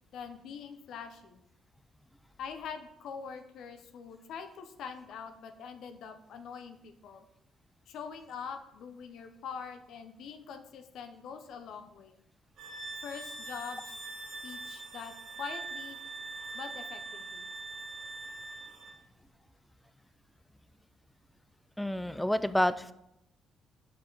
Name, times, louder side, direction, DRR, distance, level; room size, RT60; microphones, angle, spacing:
voice 1, 0.1-1.4 2.4-7.3 7.9-12.2 13.0-13.9 14.4-16.0 16.5-17.5, left 6 dB, 75° left, 7 dB, 0.6 m, -44 dB
sound 1, 12.6-19.0, right 3 dB, 70° right, 1.8 m, -42 dB
voice 2, 21.8-22.9, left 1 dB, 5° left, 14 dB, 0.4 m, -28 dB
6.4 x 5.8 x 3.9 m, 0.84 s
cardioid pair, 90°, 0 cm